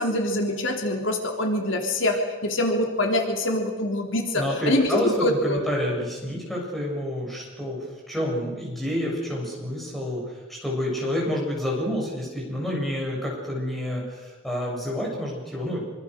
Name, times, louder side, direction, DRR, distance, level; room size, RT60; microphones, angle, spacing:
voice 1, 0.0-5.6, left 1 dB, 70° left, 2 dB, 3.4 m, -25 dB
voice 2, 4.3-10.2 10.5-15.9, left 1 dB, ahead, -4 dB, 7.9 m, -28 dB
26.0 x 25.0 x 6.6 m, 1.3 s
head